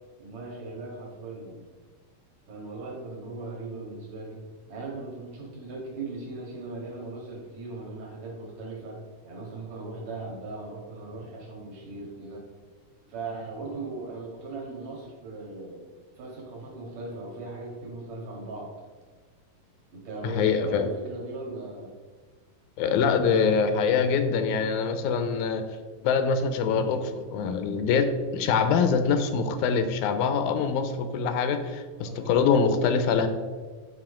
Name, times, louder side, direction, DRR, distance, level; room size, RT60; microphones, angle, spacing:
voice 1, 0.2-1.6 2.5-9.0 9.2-12.4 13.1-15.8 16.1-18.7 19.9-21.9 25.1-25.4 32.0-32.4, right 3 dB, 60° right, -3 dB, 2.9 m, -39 dB
voice 2, 20.3-20.9 22.8-25.6 26.0-33.3, left 5 dB, 80° left, 9 dB, 1.9 m, -24 dB
9.0 x 3.8 x 4.9 m, 1.4 s
omnidirectional pair, 3.8 m